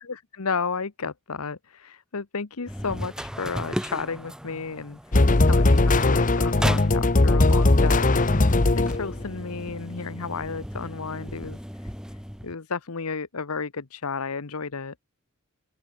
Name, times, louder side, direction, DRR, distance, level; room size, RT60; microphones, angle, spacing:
voice 1, 0.0-11.9 12.4-14.9, left 5 dB, 75° left, 1.0 m, -33 dB
sound 1, 2.7-12.6, equal, 5° right, 3.7 m, -36 dB
sound 2, 5.1-9.3, left 2 dB, 35° left, 0.9 m, -19 dB
open air
head